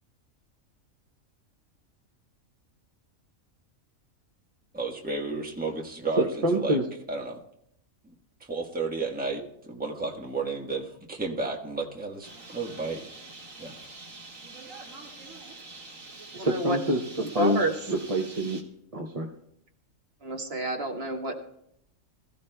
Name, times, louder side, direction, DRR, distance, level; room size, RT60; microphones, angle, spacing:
voice 1, 4.7-6.8 7.1-7.4 8.0-8.1 8.4-13.0 13.6-13.7, right 3 dB, 5° right, 1 dB, 1.1 m, -32 dB
voice 2, 6.2-6.8 16.3-17.6 17.9-18.6 18.9-19.3, right 1 dB, 35° right, 2 dB, 0.8 m, -26 dB
Bird, 12.2-18.6, right 3 dB, 75° right, 2.3 m, -45 dB
voice 3, 16.4-16.8 17.2-17.7 20.2-21.3, right 2 dB, 50° right, 2 dB, 1.4 m, -29 dB
22.0 x 14.5 x 2.2 m, 0.72 s
omnidirectional pair, 1.4 m